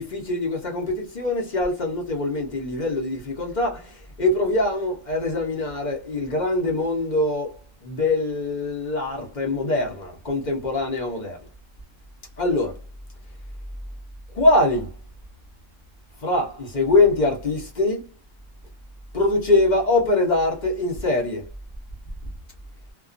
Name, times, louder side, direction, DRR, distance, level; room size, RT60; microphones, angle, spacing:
voice 1, 0.0-7.5 7.8-11.4 12.4-12.7 14.3-14.9 16.2-18.0 19.1-21.5, left 2 dB, 45° left, 0.7 m, -23 dB
2.3 x 2.2 x 2.4 m
omnidirectional pair, 1.4 m